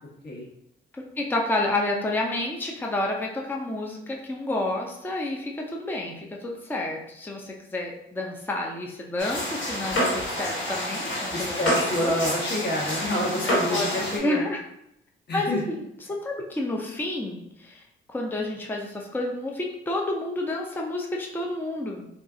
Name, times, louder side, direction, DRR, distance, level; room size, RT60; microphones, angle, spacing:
voice 1, 0.9-12.2 13.5-13.9 14.1-14.6 15.3-15.8 16.1-17.8 18.1-22.1, left 2 dB, 10° left, -1 dB, 0.5 m, -30 dB
sound 1, 9.2-14.2, equal, 70° left, 1.4 m, -28 dB
voice 2, 11.3-14.5 15.3-15.6, left 1 dB, 55° left, -3 dB, 1.1 m, -28 dB
2.5 x 2.3 x 3.7 m, 0.78 s
cardioid pair, 100°, 21 cm